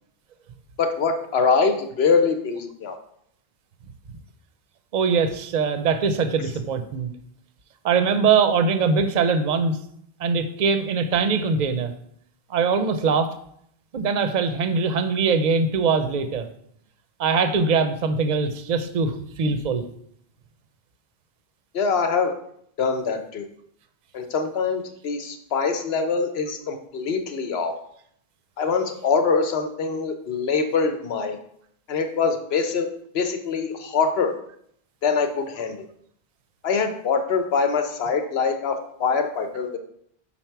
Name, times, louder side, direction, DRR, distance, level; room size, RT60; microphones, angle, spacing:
voice 1, 0.8-3.0 21.7-22.3 22.8-23.5 24.1-27.7 28.6-31.4 31.9-32.9 33.1-34.3 35.0-35.8 36.6-39.8, left 5 dB, 75° left, 6 dB, 1.0 m, -24 dB
voice 2, 4.9-7.1 7.8-9.8 10.2-11.9 12.5-13.3 13.9-16.5 17.2-19.9, right 5 dB, 50° right, 9 dB, 0.6 m, -22 dB
5.7 x 4.3 x 4.5 m, 0.69 s
omnidirectional pair, 1.1 m